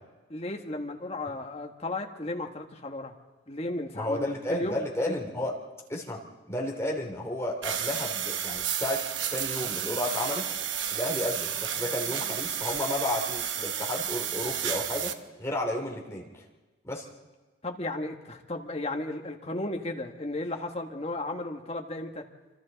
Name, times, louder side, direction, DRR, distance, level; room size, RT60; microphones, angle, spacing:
voice 1, 0.3-3.1 3.5-4.8 5.0-5.2 17.6-22.2, left 2 dB, 30° left, 3 dB, 1.5 m, -34 dB
voice 2, 3.9-5.5 5.9-6.2 6.5-10.5 10.9-15.1 15.4-16.4 16.8-17.0, left 1 dB, 15° left, -1 dB, 2.9 m, -32 dB
sound 1, 7.6-15.1, right 9 dB, 70° right, 1.0 m, -32 dB
26.5 x 25.5 x 4.0 m, 1.2 s
head